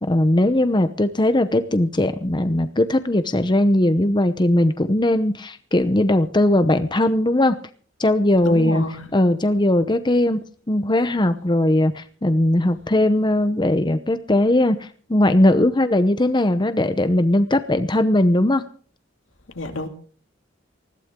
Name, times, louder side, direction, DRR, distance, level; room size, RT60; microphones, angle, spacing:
voice 1, 0.0-7.6 8.0-8.8 9.1-10.4 10.7-18.6, left 1 dB, 25° left, 0.9 m, -19 dB
voice 2, 8.4-9.1 19.5-19.9, left 2 dB, 80° left, 2.4 m, -28 dB
20.5 x 15.5 x 3.7 m
head